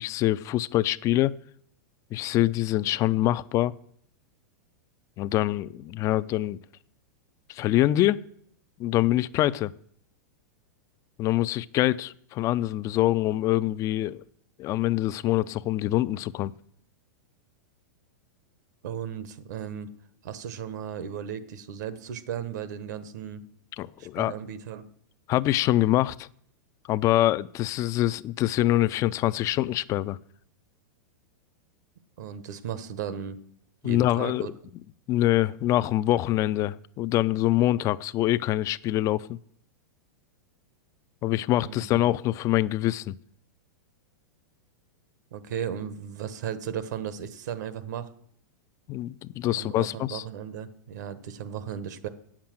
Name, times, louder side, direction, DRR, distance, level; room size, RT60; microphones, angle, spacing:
voice 1, 0.0-1.3 2.1-3.7 5.2-6.6 7.5-8.2 8.8-9.7 11.2-14.2 14.6-16.5 23.8-24.3 25.3-26.3 26.9-30.2 33.8-34.5 35.1-39.4 41.2-43.1 48.9-50.2, left 15 dB, 35° left, 18 dB, 0.4 m, -25 dB
voice 2, 18.8-19.9 20.2-23.4 24.0-24.8 32.2-33.4 33.8-34.5 41.6-42.0 45.3-48.1 49.6-52.1, right 8 dB, 70° right, 14 dB, 1.2 m, -35 dB
8.5 x 7.4 x 7.6 m, 0.65 s
hypercardioid pair, 125°, 10 cm